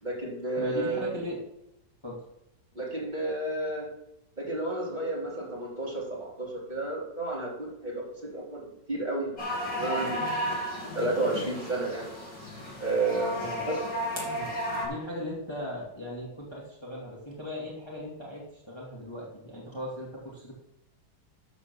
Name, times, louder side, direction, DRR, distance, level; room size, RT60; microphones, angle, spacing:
voice 1, 0.0-1.1 2.8-3.9 4.4-8.0 8.3-10.4 10.9-12.1 12.8-13.4 13.7-13.8, right 2 dB, 25° right, -5 dB, 3.3 m, -31 dB
voice 2, 0.6-1.4 2.0-2.2 13.3-13.7 14.3-14.5 14.8-20.5, left 1 dB, 15° left, -5 dB, 2.4 m, -38 dB
sound 1, 9.4-14.9, equal, 80° left, 3.6 m, -33 dB
12.5 x 4.4 x 6.9 m, 0.86 s
omnidirectional pair, 1.9 m